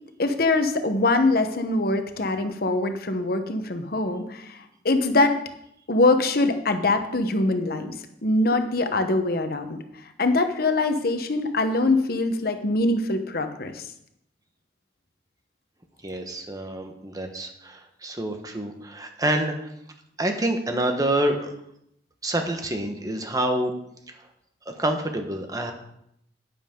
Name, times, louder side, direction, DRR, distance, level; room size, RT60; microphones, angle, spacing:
voice 1, 0.2-5.4 5.9-7.9 8.2-9.8 10.2-13.9, left 2 dB, 60° left, 7 dB, 1.0 m, -23 dB
voice 2, 16.0-19.7 20.2-21.5 22.2-23.7 24.7-25.7, right 1 dB, 20° right, 5 dB, 1.2 m, -27 dB
11.0 x 9.7 x 3.8 m, 0.76 s
head